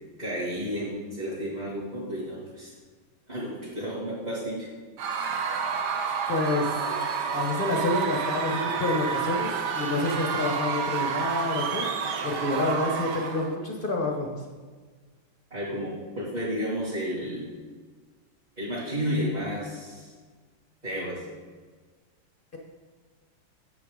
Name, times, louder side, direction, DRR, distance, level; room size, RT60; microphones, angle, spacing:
voice 1, 0.2-2.7 3.3-4.7 15.5-17.5 18.6-20.1 20.8-21.2, equal, 20° right, -11 dB, 2.4 m, -32 dB
Screaming / Cheering / Crowd, 5.0-13.5, right 6 dB, 65° right, 1.3 m, -29 dB
voice 2, 6.3-6.7 7.3-11.9 12.2-14.3, left 2 dB, 40° left, 1 dB, 0.8 m, -28 dB
8.0 x 7.8 x 5.0 m, 1.5 s
omnidirectional pair, 2.3 m